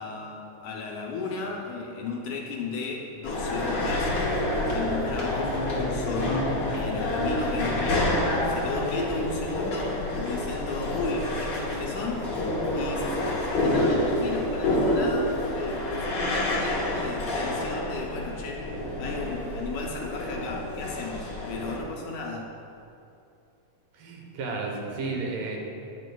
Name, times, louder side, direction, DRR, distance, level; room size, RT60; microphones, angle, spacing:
voice 1, 0.0-4.1 4.7-12.3 12.7-22.5, left 4 dB, 75° left, -1 dB, 2.0 m, -35 dB
sound 1, 3.2-21.8, left 1 dB, 55° left, 1.3 m, -28 dB
voice 2, 23.9-25.6, right 3 dB, 75° right, 0 dB, 2.5 m, -32 dB
16.0 x 5.4 x 2.3 m, 2.7 s
omnidirectional pair, 3.9 m